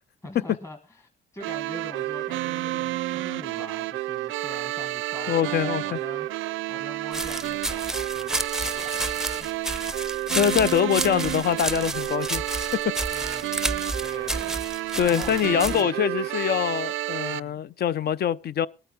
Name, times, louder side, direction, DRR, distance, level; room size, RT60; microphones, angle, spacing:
voice 1, 0.2-9.6 13.1-16.0 17.3-17.6, left 1 dB, 15° left, 1.3 m, -43 dB
sound 1, 1.4-17.4, right 16 dB, 90° right, 0.5 m, -30 dB
voice 2, 5.3-6.0 10.3-12.4 15.0-18.7, left 9 dB, 55° left, 0.6 m, -24 dB
sound 2, 7.1-15.8, right 1 dB, 5° right, 0.6 m, -31 dB
20.0 x 8.9 x 3.7 m
cardioid pair, 90°, 20 cm